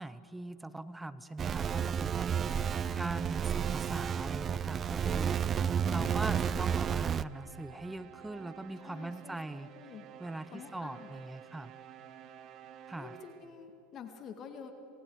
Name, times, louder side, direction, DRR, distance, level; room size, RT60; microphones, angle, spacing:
voice 1, 0.0-2.7 3.0-9.7 10.2-11.7 12.9-13.2, right 2 dB, 10° right, 15 dB, 0.8 m, -41 dB
sound 1, 1.4-7.2, right 8 dB, 30° right, 0.5 m, -31 dB
voice 2, 2.4-3.1 5.8-6.6 8.8-10.1 10.5-11.1 12.9-14.7, left 7 dB, 40° left, 6 dB, 2.0 m, -48 dB
sound 2, 5.1-13.7, right 9 dB, 50° right, 1.8 m, -53 dB
28.0 x 20.0 x 4.8 m, 3.0 s
hypercardioid pair, 95°, 0 cm